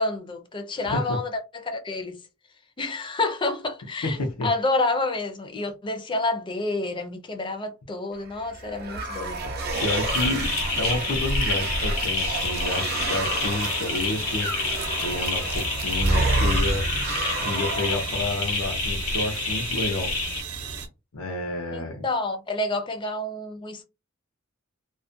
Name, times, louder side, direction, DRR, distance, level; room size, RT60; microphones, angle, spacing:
voice 1, 0.0-2.2 2.8-9.4 21.7-23.8, left 2 dB, 20° left, 0.4 m, -29 dB
voice 2, 0.8-1.2 4.0-4.5 9.4-9.5 9.8-14.8 15.0-16.9 17.4-20.2 21.1-22.0, left 2 dB, 85° left, 0.6 m, -30 dB
sound 1, 8.3-18.3, right 2 dB, 45° right, 0.5 m, -29 dB
sound 2, 9.6-20.9, right 3 dB, 90° right, 0.7 m, -34 dB
sound 3, 9.7-20.4, left 4 dB, 70° left, 1.0 m, -29 dB
2.3 x 2.1 x 2.6 m
head